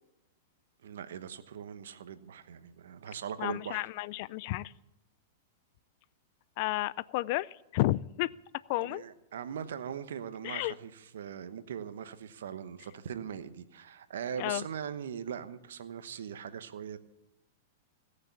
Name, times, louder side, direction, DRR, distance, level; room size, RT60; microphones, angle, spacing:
voice 1, 0.8-3.8 8.8-17.0, right 8 dB, 75° right, 12 dB, 1.0 m, -40 dB
voice 2, 3.4-4.7 6.6-8.3 8.7-9.0 10.4-10.8 14.4-14.6, left 18 dB, 55° left, 21 dB, 0.4 m, -32 dB
17.5 x 6.6 x 8.3 m, 0.97 s
hypercardioid pair, 120°, 0 cm